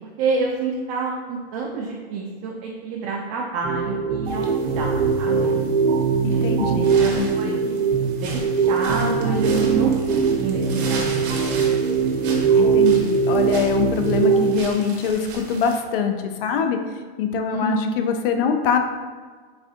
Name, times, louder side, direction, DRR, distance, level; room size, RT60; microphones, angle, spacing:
voice 1, 0.2-5.5 6.3-7.8 8.2-11.8 17.5-18.0, right 4 dB, 40° right, -2 dB, 0.4 m, -28 dB
sound 1, 3.6-14.6, right 6 dB, 85° right, 0.9 m, -21 dB
sound 2, 4.3-15.8, right 3 dB, 60° right, 0.8 m, -38 dB
voice 2, 6.2-7.6 12.5-16.2 16.4-16.8 17.2-18.8, left 7 dB, 60° left, 5 dB, 0.4 m, -23 dB
4.1 x 2.4 x 2.5 m, 1.5 s
hypercardioid pair, 130°, 31 cm